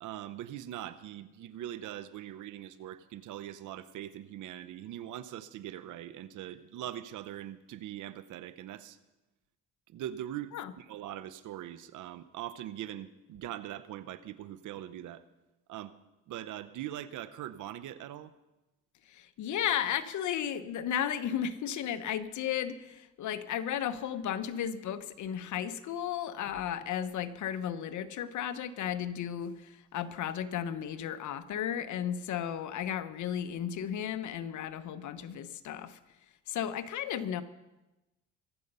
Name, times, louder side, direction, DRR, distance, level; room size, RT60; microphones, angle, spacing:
voice 1, 0.0-9.0 9.9-15.2 15.7-15.9 16.3-18.3, right 12 dB, 80° right, 14 dB, 0.9 m, -42 dB
voice 2, 19.1-36.0 36.5-37.4, left 9 dB, 75° left, 12 dB, 1.0 m, -34 dB
23.5 x 8.0 x 5.5 m, 1.0 s
cardioid pair, 90°, 30 cm